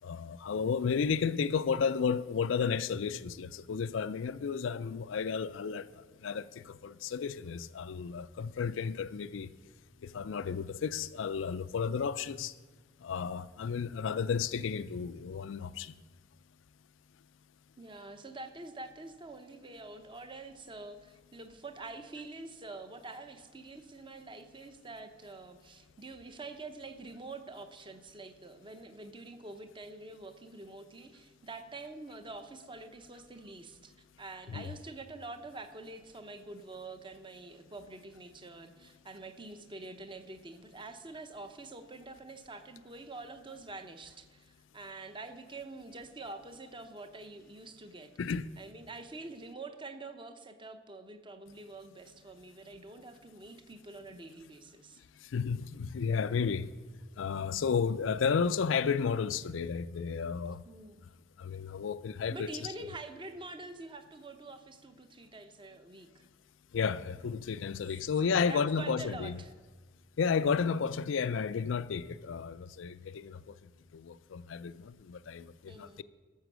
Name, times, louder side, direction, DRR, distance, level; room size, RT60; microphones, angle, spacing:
voice 1, 0.0-9.5 10.0-12.5 13.0-16.0 34.5-34.8 48.2-48.5 55.2-56.7 57.2-60.6 61.4-62.7 66.7-69.4 70.2-73.6 73.9-76.0, left 6 dB, 85° left, 0.4 m, -32 dB
voice 2, 17.8-33.9 34.2-48.1 48.6-55.0 60.6-61.0 62.3-66.2 68.2-69.5 75.7-76.0, right 2 dB, 25° right, 0.8 m, -46 dB
13.0 x 6.9 x 6.2 m
head